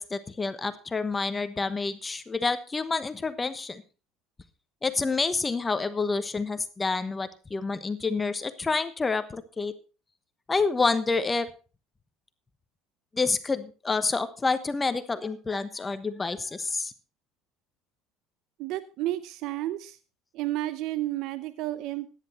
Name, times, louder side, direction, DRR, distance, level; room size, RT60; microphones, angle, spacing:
voice 1, 0.0-3.8 4.8-9.7 10.5-11.5 13.1-16.9, left 4 dB, 20° left, 12 dB, 1.1 m, -28 dB
voice 2, 18.6-20.0 20.3-22.1, right 15 dB, 65° right, 14 dB, 0.7 m, -31 dB
14.0 x 10.0 x 4.3 m, 0.35 s
supercardioid pair, 100°, 0 cm